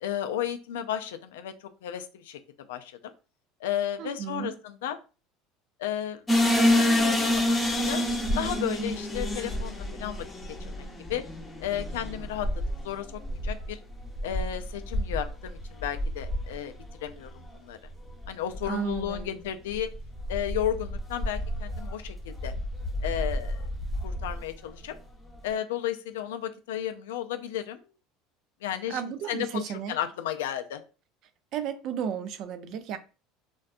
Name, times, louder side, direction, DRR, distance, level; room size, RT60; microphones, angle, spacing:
voice 1, 0.0-2.4 2.7-3.1 3.6-5.0 5.8-6.2 6.6-8.0 8.4-10.3 10.6-11.2 11.6-12.5 12.8-13.8 14.2-16.7 17.0-17.8 18.3-19.9 20.3-22.5 23.0-23.6 24.0-24.9 25.4-27.8 28.6-29.0 29.3-30.8, left 10 dB, 90° left, 0.3 m, -33 dB
voice 2, 4.0-4.6 18.7-19.4 28.9-30.0 31.5-33.0, right 8 dB, 55° right, 0.4 m, -33 dB
sound 1, 6.3-17.1 17.4-17.5 18.1-18.3 18.5-19.2 19.7-24.4, left 1 dB, 20° left, 0.7 m, -29 dB
2.5 x 2.2 x 2.4 m
supercardioid pair, 100°, 0 cm